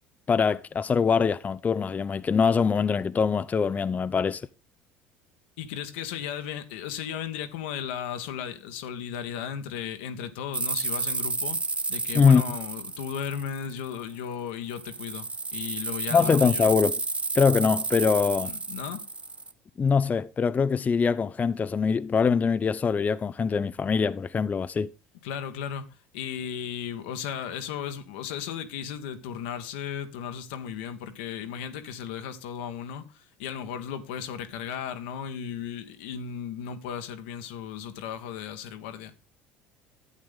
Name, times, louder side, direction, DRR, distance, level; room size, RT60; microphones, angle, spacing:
voice 1, 0.3-4.4 12.1-12.4 16.1-17.0 17.3-18.5 19.8-24.9, left 5 dB, 30° left, 0.5 m, -23 dB
voice 2, 5.6-11.6 11.9-16.7 18.4-19.0 25.2-39.1, left 8 dB, 75° left, 1.2 m, -35 dB
sound 1, 10.5-14.1 14.7-19.5, right 3 dB, 20° right, 0.8 m, -31 dB
11.5 x 8.7 x 3.6 m
hypercardioid pair, 70°, 6 cm